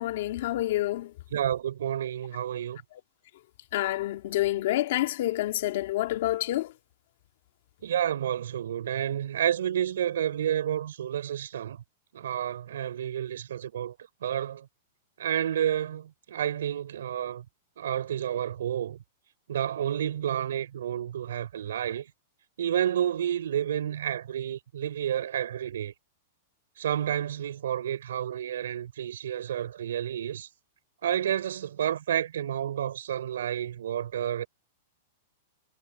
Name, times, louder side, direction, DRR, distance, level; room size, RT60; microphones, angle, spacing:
voice 1, 0.0-1.1 3.7-6.7, left 15 dB, 45° left, 2.3 m, -28 dB
voice 2, 1.3-2.8 7.8-11.8 12.1-13.9 14.2-14.7 15.2-17.4 17.8-19.0 19.5-22.1 22.6-25.9 26.8-30.5 31.0-34.5, right 10 dB, 75° right, 5.2 m, -30 dB
supercardioid pair, 180°, 0 cm